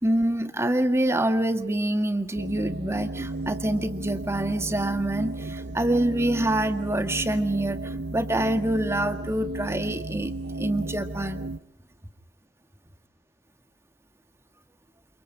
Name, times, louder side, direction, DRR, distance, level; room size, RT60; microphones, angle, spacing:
voice 1, 0.0-11.4, right 1 dB, 15° right, 8 dB, 1.9 m, -26 dB
sound 1, 2.4-11.6, right 2 dB, 75° right, 1.3 m, -34 dB
28.5 x 28.0 x 4.8 m, 0.74 s
head